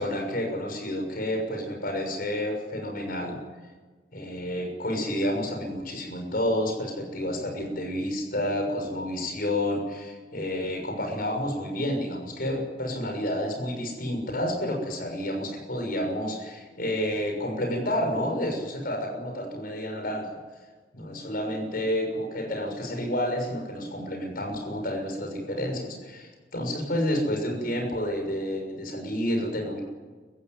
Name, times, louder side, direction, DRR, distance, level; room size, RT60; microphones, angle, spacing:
voice 1, 0.0-3.4 4.1-20.4 20.9-29.8, left 1 dB, 50° left, 2 dB, 6.7 m, -30 dB
24.5 x 15.0 x 9.6 m, 1.4 s
head